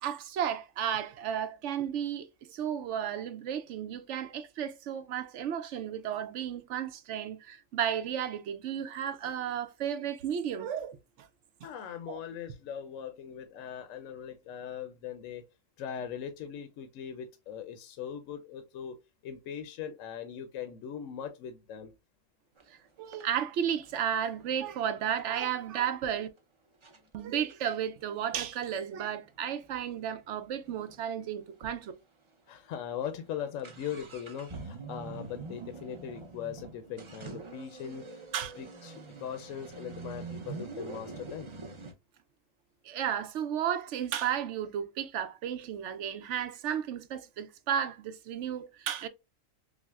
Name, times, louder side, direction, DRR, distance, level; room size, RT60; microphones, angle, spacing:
voice 1, 0.0-11.3 12.1-12.2 23.0-26.3 27.1-31.9 38.3-38.5 42.8-49.1, right 9 dB, 70° right, 0.9 m, -33 dB
voice 2, 11.6-15.5 15.8-21.9 32.5-38.2 38.6-41.5, left 8 dB, 80° left, 1.0 m, -40 dB
sound 1, 22.6-22.7 23.1-25.8 26.4-26.5 26.8-27.0 27.4-31.1 31.3-31.4 31.6-31.7 32.3-32.5 32.8-41.9, right 3 dB, 35° right, 0.5 m, -45 dB
6.1 x 2.1 x 2.3 m
omnidirectional pair, 1.3 m